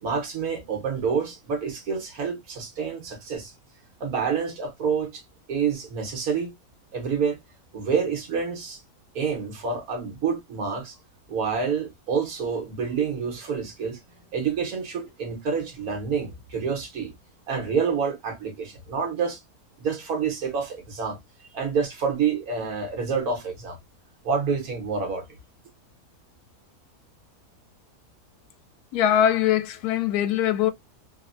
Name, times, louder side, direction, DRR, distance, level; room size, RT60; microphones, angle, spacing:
voice 1, 0.0-3.5 4.0-5.2 5.5-6.5 6.9-7.4 7.7-8.8 9.1-11.0 11.3-14.0 14.3-17.1 17.5-19.4 19.8-21.2 21.5-23.8 24.2-25.2, right 6 dB, 75° right, 1.5 m, -28 dB
voice 2, 28.9-30.7, left 10 dB, 85° left, 1.1 m, -22 dB
3.5 x 2.1 x 2.4 m
omnidirectional pair, 1.6 m